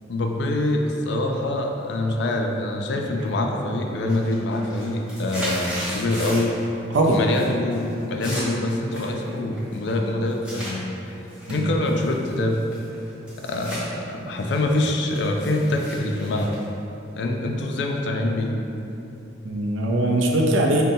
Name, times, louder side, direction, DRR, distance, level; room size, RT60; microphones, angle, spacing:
voice 1, 0.1-6.6 7.1-10.8 11.5-12.6 13.4-16.5 17.2-18.5, left 2 dB, 65° left, 2 dB, 0.3 m, -25 dB
sound 1, 3.2-3.6 3.9-6.6 6.9-7.4 7.7-10.7 11.3-13.8 14.2-17.4, equal, 5° right, 0.7 m, -36 dB
voice 2, 19.4-20.8, right 1 dB, 85° right, 0 dB, 0.5 m, -21 dB
5.3 x 2.1 x 2.6 m, 2.8 s
head